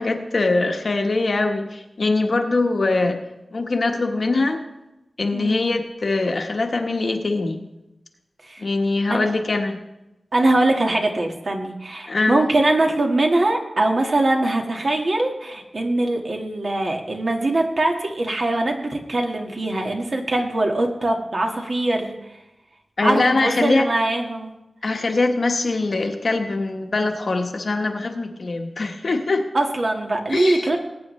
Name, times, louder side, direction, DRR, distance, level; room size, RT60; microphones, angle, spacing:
voice 1, 0.0-3.2 3.5-4.6 5.2-7.6 8.6-9.8 12.1-12.5 23.0-23.9 24.8-29.4 30.3-30.7, left 3 dB, 55° left, 4 dB, 1.2 m, -22 dB
voice 2, 10.3-22.2 23.0-24.5 29.5-30.8, right 2 dB, 50° right, 2 dB, 1.6 m, -22 dB
20.5 x 9.2 x 3.2 m, 0.95 s
wide cardioid pair, 115°, 0 cm